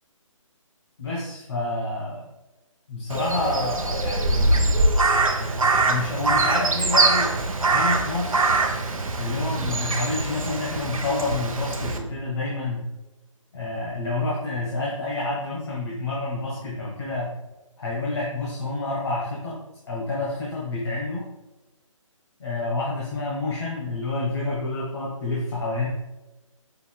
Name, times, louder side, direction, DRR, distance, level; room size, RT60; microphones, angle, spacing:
voice 1, 1.0-2.3 2.9-4.8 5.4-7.3 7.7-8.5 9.2-12.8 13.5-17.3 17.8-19.6 19.9-21.3 22.4-25.9, left 2 dB, 55° left, -4 dB, 1.2 m, -28 dB
Crow, 3.1-12.0, right 2 dB, 85° right, 0.7 m, -23 dB
5.6 x 4.0 x 2.2 m, 1.0 s
figure-of-eight pair, 145°, 17 cm